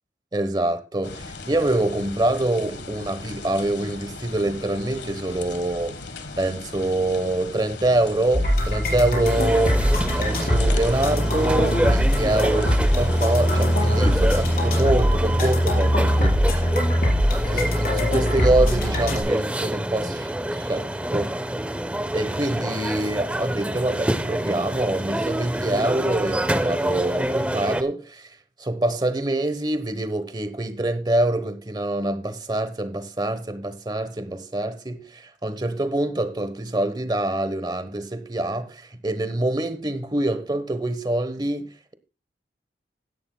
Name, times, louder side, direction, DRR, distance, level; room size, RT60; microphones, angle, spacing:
voice 1, 0.3-6.0 6.4-9.8 10.1-16.6 17.5-21.3 22.1-28.3 28.6-41.7, right 1 dB, 25° right, 0.9 m, -25 dB
sound 1, 1.0-14.7, left 3 dB, 80° left, 1.4 m, -38 dB
sound 2, 8.3-19.2, equal, 55° left, 4.6 m, -21 dB
sound 3, 9.2-27.8, right 1 dB, 5° right, 0.5 m, -27 dB
16.5 x 11.0 x 2.2 m
head